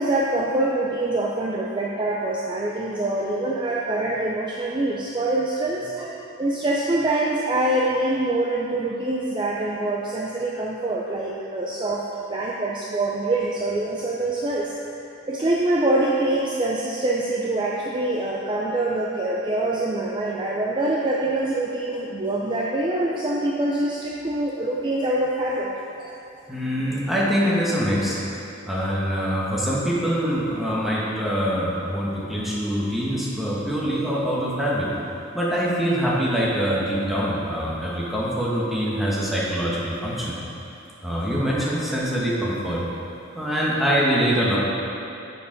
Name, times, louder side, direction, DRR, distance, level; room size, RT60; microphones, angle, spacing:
voice 1, 0.0-12.0 12.3-14.7 15.3-25.7 26.0-26.1, right 2 dB, 25° right, -3 dB, 0.5 m, -25 dB
voice 2, 26.5-28.2 28.7-34.9 35.3-40.3 41.0-42.8 43.3-44.6, equal, ahead, -7 dB, 1.4 m, -24 dB
6.8 x 6.5 x 5.1 m, 2.9 s
head